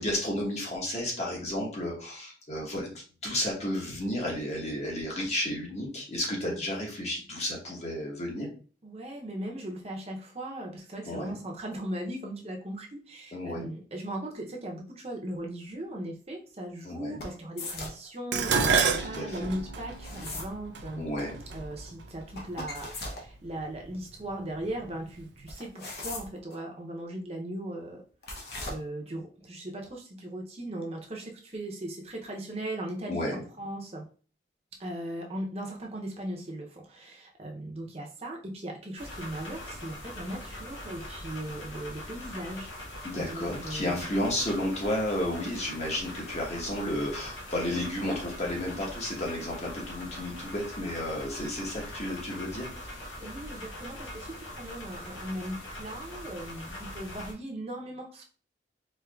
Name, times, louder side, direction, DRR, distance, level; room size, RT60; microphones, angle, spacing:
voice 1, 0.0-2.9 3.2-8.5 11.1-11.3 13.3-13.7 16.8-17.2 19.1-19.5 21.0-21.4 33.1-33.4 43.0-52.7, left 1 dB, 40° left, -2 dB, 1.1 m, -32 dB
voice 2, 8.8-21.0 21.5-28.0 28.7-34.0 34.8-42.7 43.1-44.0 52.9-58.2, right 1 dB, 35° right, 1 dB, 0.7 m, -38 dB
sound 1, 17.2-18.1 19.9-20.5 22.4-23.2 25.5-26.6 28.2-28.7, left 2 dB, 60° left, 0.9 m, -38 dB
Dishes pots and pans, 18.3-22.7 23.6-24.0 24.3-25.2 25.4-25.5, right 5 dB, 75° right, 0.5 m, -30 dB
sound 2, 39.0-57.3, left 1 dB, 85° left, 1.2 m, -42 dB
4.4 x 2.8 x 2.4 m, 0.40 s
head